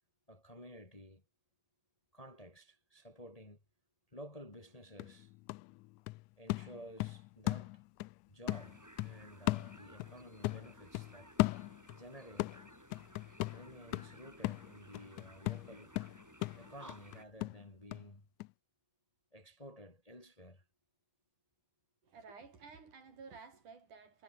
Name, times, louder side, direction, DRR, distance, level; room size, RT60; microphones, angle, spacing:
voice 1, 0.3-1.2 2.1-3.6 4.1-5.3 6.4-7.8 8.3-11.4 11.9-12.6 13.5-16.0 16.6-18.3 19.3-20.6, equal, 15° left, 2.2 m, -53 dB
sound 1, 4.5-4.6 5.0-8.1 8.5-10.2 10.4-12.0 12.4-18.1 18.4-18.5, left 21 dB, 80° left, 1.9 m, -37 dB
sound 2, 8.5-17.3, right 1 dB, 5° right, 3.2 m, -58 dB
voice 2, 22.0-24.2, right 5 dB, 75° right, 6.4 m, -53 dB
omnidirectional pair, 3.6 m